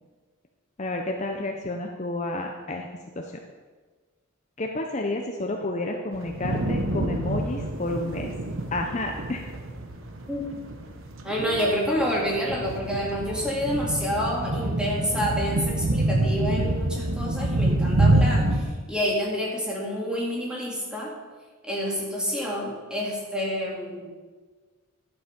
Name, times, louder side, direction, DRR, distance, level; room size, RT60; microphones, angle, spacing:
voice 1, 0.8-2.9 3.2-3.3 4.6-8.3 8.7-9.4 11.4-11.7, left 2 dB, 30° left, 2 dB, 0.6 m, -30 dB
sound 1, 6.1-18.6, right 1 dB, 65° right, 1.1 m, -27 dB
voice 2, 10.3-10.6 11.2-21.1 21.6-24.1, equal, 5° right, -4 dB, 2.3 m, -28 dB
11.5 x 7.9 x 5.2 m, 1.4 s
head